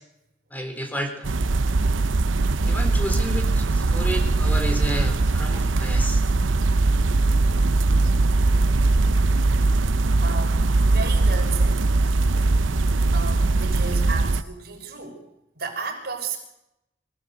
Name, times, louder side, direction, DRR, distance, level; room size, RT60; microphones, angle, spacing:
voice 1, 0.5-1.3 2.7-6.2, equal, 10° left, 6 dB, 3.8 m, -31 dB
sound 1, 1.2-14.4, right 3 dB, 85° right, 0.8 m, -20 dB
voice 2, 10.2-11.8 12.2-12.5 13.1-15.2 15.5-16.4, right 4 dB, 55° right, 1 dB, 6.0 m, -34 dB
26.0 x 17.0 x 8.2 m, 0.85 s
head